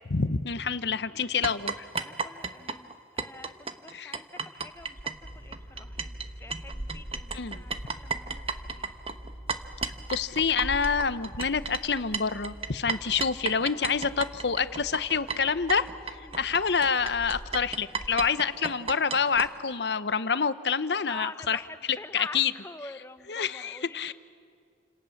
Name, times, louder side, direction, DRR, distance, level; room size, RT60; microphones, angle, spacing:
voice 1, 0.1-1.8 3.9-4.2 7.3-7.6 9.8-21.6 22.1-22.5 23.3-24.1, left 5 dB, 75° left, 13 dB, 0.9 m, -27 dB
sound 1, 1.4-6.3 6.5-19.5, right 5 dB, 35° right, 1.1 m, -34 dB
voice 2, 2.0-8.9 16.2-16.4 21.1-24.1, left 2 dB, 15° left, 10 dB, 1.0 m, -46 dB
sound 2, 5.2-17.7, equal, 65° right, 3.8 m, -47 dB
30.0 x 27.0 x 7.2 m, 2.2 s
head